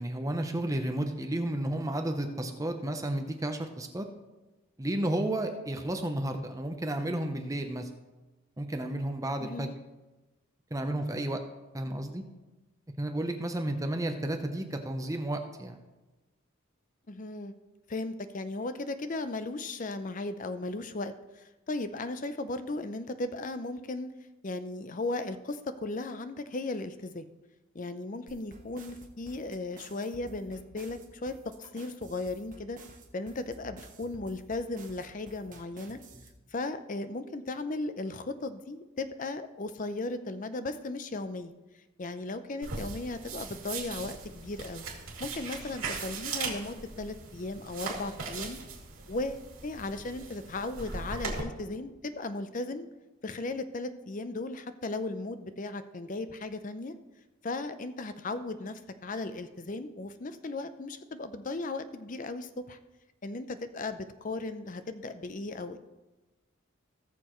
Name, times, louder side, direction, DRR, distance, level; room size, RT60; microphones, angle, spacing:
voice 1, 0.0-4.1 4.8-7.9 8.6-9.7 10.7-11.4 11.7-12.2 13.0-15.8, right 1 dB, 15° right, 5 dB, 0.7 m, -32 dB
voice 2, 9.4-9.8 17.1-17.5 17.9-24.1 24.4-27.3 27.7-32.8 33.1-36.0 36.5-41.5 42.0-44.8 45.2-48.6 49.1-52.9 53.2-56.9 57.4-62.8 63.2-65.8, left 2 dB, 35° left, 10 dB, 0.6 m, -36 dB
sound 1, 28.3-36.3, right 2 dB, 35° right, 1.3 m, -51 dB
sound 2, 42.6-51.4, right 4 dB, 85° right, 2.6 m, -39 dB
18.0 x 6.8 x 3.1 m, 1.1 s
head